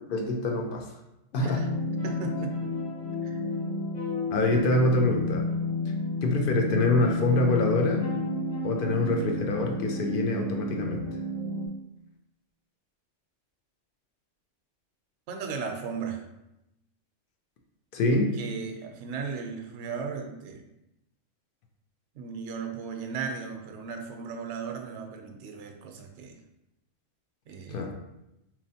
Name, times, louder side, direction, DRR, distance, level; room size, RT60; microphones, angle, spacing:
voice 1, 0.1-0.9 1.3-1.7 4.3-5.5 5.9-6.0 6.2-8.1 8.6-11.1 17.9-18.4 27.7-27.9, left 2 dB, 60° left, 2 dB, 0.6 m, -25 dB
sound 1, 1.3-11.7, left 2 dB, 75° left, 1.3 m, -31 dB
voice 2, 2.0-2.7 3.2-3.4 15.3-16.2 18.3-20.6 22.1-26.4 27.5-27.8, right 5 dB, 75° right, 5 dB, 0.9 m, -36 dB
4.1 x 3.1 x 2.7 m, 0.90 s
omnidirectional pair, 1.3 m